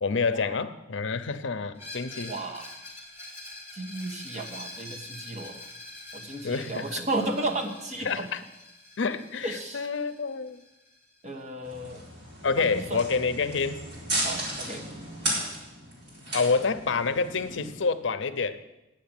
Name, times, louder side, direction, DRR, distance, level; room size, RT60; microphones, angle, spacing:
voice 1, 0.0-2.3 6.4-6.8 8.0-8.4 9.0-10.6 12.4-13.8 16.3-18.6, left 4 dB, 70° left, 11 dB, 0.6 m, -28 dB
Screech, 1.7-11.4, left 2 dB, 10° right, 2.7 m, -45 dB
voice 2, 2.3-2.7 3.7-5.6 6.1-8.3 9.4-9.9 11.2-12.0 12.6-13.0 14.2-14.9, right 2 dB, 40° right, 2 dB, 1.3 m, -34 dB
sound 1, 11.6-17.7, right 1 dB, 60° right, 4.3 m, -34 dB
9.5 x 7.6 x 9.0 m, 0.97 s
head